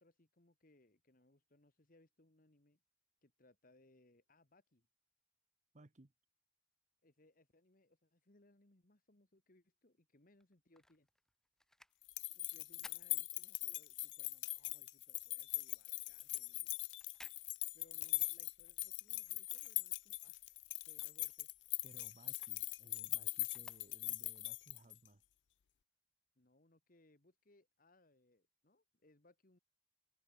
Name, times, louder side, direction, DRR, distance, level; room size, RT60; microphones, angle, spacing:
voice 1, 0.0-2.8 3.2-4.9 7.0-11.1 12.3-16.7 17.7-20.4 20.8-21.5 26.4-29.6, left 2 dB, 50° left, 1.9 m, -70 dB
voice 2, 5.7-6.1 21.8-25.2, right 2 dB, 40° right, 1.1 m, -62 dB
sound 1, 10.3-14.0 14.4-20.3 20.6-24.4 25.0-25.1, left 1 dB, 5° left, 0.9 m, -66 dB
sound 2, 12.0-25.1, left 22 dB, 75° left, 0.5 m, -41 dB
head